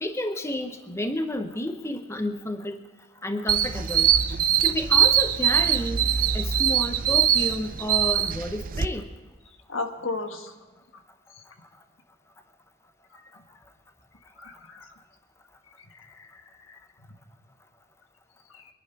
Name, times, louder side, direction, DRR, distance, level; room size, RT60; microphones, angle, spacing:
voice 1, 0.0-2.8 3.2-4.2 4.6-6.0 6.3-9.1, left 1 dB, 15° left, 7 dB, 0.7 m, -31 dB
sound 1, 3.5-8.9, right 9 dB, 45° right, 0.5 m, -22 dB
voice 2, 9.7-10.5 13.2-13.3 14.4-14.9 15.9-16.3 16.7-16.8 18.5-18.6, left 3 dB, 80° left, 5 dB, 1.6 m, -34 dB
23.5 x 11.0 x 4.6 m, 1.3 s
head